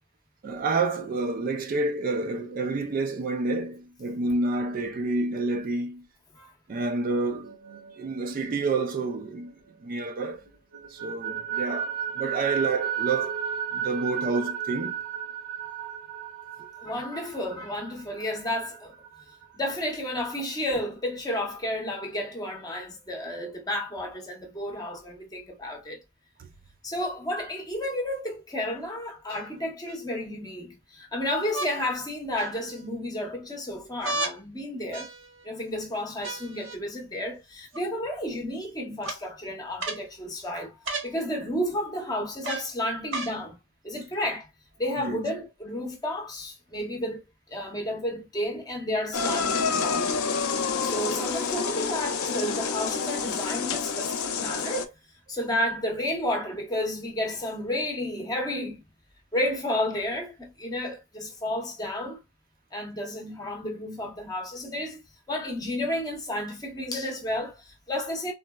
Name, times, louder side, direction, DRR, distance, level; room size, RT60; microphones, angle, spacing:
voice 1, 0.4-6.0 6.7-7.5 8.0-9.5 9.8-10.4 10.9-13.4 13.7-15.0 16.6-16.7 26.4-26.5 45.0-45.2, right 3 dB, 40° right, 0.3 m, -29 dB
sound 1, 7.4-10.1 10.4-19.9, right 8 dB, 85° right, 1.3 m, -35 dB
voice 2, 16.8-18.9 19.5-26.0 26.8-35.1 35.4-43.6 43.8-44.5 44.8-50.2 50.8-54.9 55.3-58.8 59.3-62.2 62.7-65.0 65.3-68.3, left 1 dB, 20° left, 0.8 m, -32 dB
sound 2, 27.5-27.6 29.3-30.0 31.5-31.7 32.4-32.9 34.0-34.4 34.9-35.5 36.2-36.8 37.7-37.8 39.0-39.2 39.8-40.1 40.8-41.1 42.4-42.7 43.1-43.4 44.2-44.3, right 2 dB, 60° right, 0.9 m, -34 dB
sound 3, 49.1-54.8, left 5 dB, 90° left, 0.5 m, -28 dB
3.7 x 2.1 x 2.2 m
head